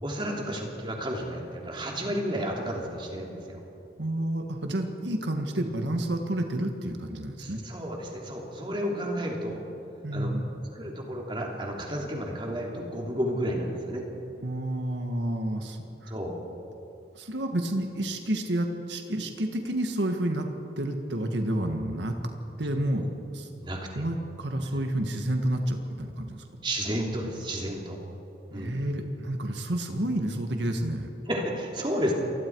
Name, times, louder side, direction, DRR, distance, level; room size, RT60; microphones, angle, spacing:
voice 1, 0.0-3.6 7.4-9.6 10.1-10.3 10.7-14.0 16.1-16.4 23.6-24.0 26.6-28.0 28.5-28.8 31.3-32.1, equal, 25° right, 0 dB, 3.0 m, -32 dB
voice 2, 4.0-7.6 10.0-10.6 14.4-16.1 17.1-20.5 20.8-22.2 22.6-23.0 23.3-23.5 23.9-26.4 28.5-31.1, right 1 dB, 80° right, 4 dB, 1.7 m, -30 dB
27.5 x 20.5 x 4.7 m, 2.9 s
head